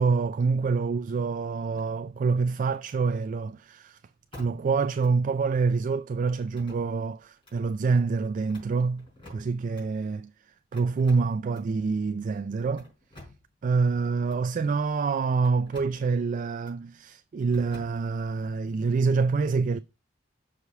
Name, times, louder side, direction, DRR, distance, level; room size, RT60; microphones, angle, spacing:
voice 1, 0.0-4.0 4.4-10.3 10.7-12.9 13.6-19.8, right 4 dB, 40° right, 0.3 m, -26 dB
sound 1, 1.8-2.3 2.8-3.0 4.3-4.8 5.0-5.1 6.4-7.1 7.4-7.6 8.3-9.9 10.7-11.8 12.6-13.5 14.2-14.4 15.4-16.0 16.6-16.8 17.5-18.3, left 1 dB, 25° left, 4.8 m, -50 dB
6.9 x 4.9 x 4.6 m
head